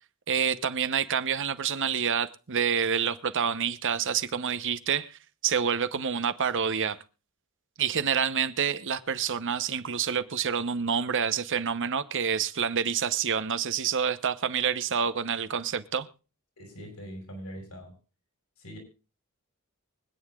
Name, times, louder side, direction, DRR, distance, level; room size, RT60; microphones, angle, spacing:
voice 1, 0.3-7.0 7.8-16.1, right 7 dB, 60° right, 0.9 m, -28 dB
voice 2, 16.6-17.9 18.6-18.8, equal, 80° left, 6.0 m, -42 dB
24.5 x 9.5 x 2.4 m
head